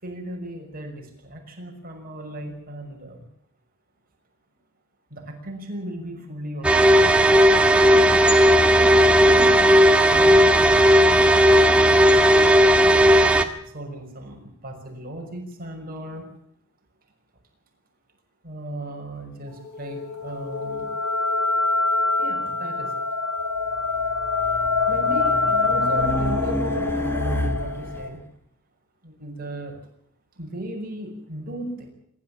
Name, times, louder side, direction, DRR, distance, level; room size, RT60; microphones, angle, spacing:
voice 1, 0.0-3.2 5.1-7.1 7.8-9.7 10.1-11.1 11.6-12.8 13.7-16.3 18.4-20.9 22.2-22.9 24.9-28.2 29.0-29.8 30.4-31.9, right 1 dB, 40° right, 2 dB, 6.0 m, -37 dB
sound 1, 6.6-13.4, equal, 5° right, 1.9 m, -15 dB
sound 2, 19.5-28.1, left 3 dB, 70° left, 5.3 m, -25 dB
Race car auto racing, 23.7-28.1, equal, 10° left, 2.4 m, -30 dB
26.5 x 13.0 x 8.6 m, 0.71 s
head